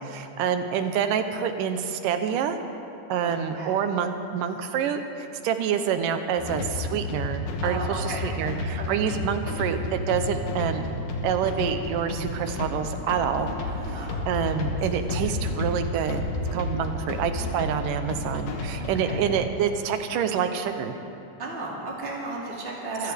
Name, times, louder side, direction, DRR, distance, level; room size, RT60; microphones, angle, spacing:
voice 1, 0.0-2.6 3.1-10.8 11.2-13.5 13.9-16.2 16.5-21.0 23.0-23.1, right 7 dB, 80° right, 8 dB, 2.4 m, -27 dB
voice 2, 3.2-3.7 7.6-8.2 8.9-9.0 13.6-14.3 15.2-15.4 16.7-16.9 18.8-19.2 21.4-23.1, right 2 dB, 20° right, -4 dB, 2.3 m, -35 dB
sound 1, 6.4-19.5, left 2 dB, 70° left, 2.7 m, -31 dB
25.5 x 15.5 x 3.5 m, 2.8 s
omnidirectional pair, 3.8 m